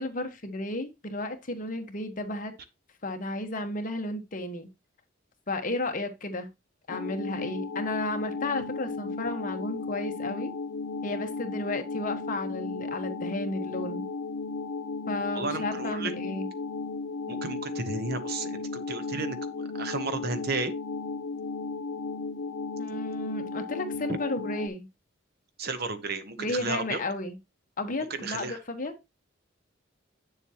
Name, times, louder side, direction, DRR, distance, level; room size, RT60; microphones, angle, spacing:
voice 1, 0.0-2.5 3.0-4.7 5.5-6.5 6.9-10.5 11.0-14.1 15.1-16.5 22.8-24.9 26.4-27.4 27.8-28.9, left 2 dB, 45° left, 1.2 m, -33 dB
sound 1, 6.9-24.7, left 4 dB, 90° left, 0.7 m, -35 dB
voice 2, 15.3-16.1 17.3-20.7 25.6-27.0 28.1-28.6, right 3 dB, 55° right, 0.9 m, -33 dB
8.1 x 7.1 x 2.9 m
head